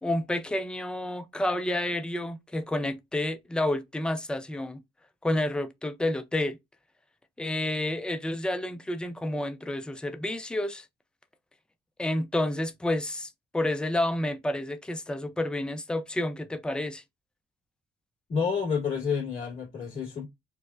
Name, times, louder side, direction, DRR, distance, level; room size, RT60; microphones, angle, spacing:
voice 1, 0.0-4.8 5.2-6.6 7.4-10.9 12.0-17.0, left 1 dB, 5° left, 0.4 m, -30 dB
voice 2, 18.3-20.3, left 6 dB, 35° left, 2.0 m, -29 dB
4.6 x 2.1 x 2.4 m
cardioid pair, 90°, 20 cm